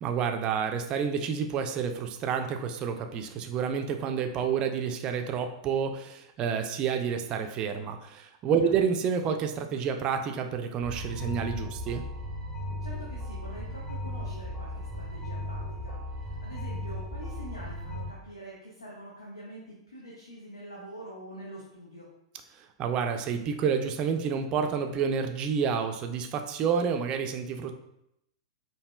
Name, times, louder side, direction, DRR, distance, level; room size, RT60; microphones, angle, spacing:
voice 1, 0.0-12.0 22.8-27.7, right 6 dB, 30° right, 6 dB, 0.4 m, -29 dB
sound 1, 10.8-18.0, left 1 dB, 20° left, 1.2 m, -36 dB
voice 2, 12.8-22.1, right 1 dB, 85° left, -4 dB, 0.7 m, -45 dB
4.7 x 2.7 x 2.2 m, 0.81 s
figure-of-eight pair, 100°, 3 cm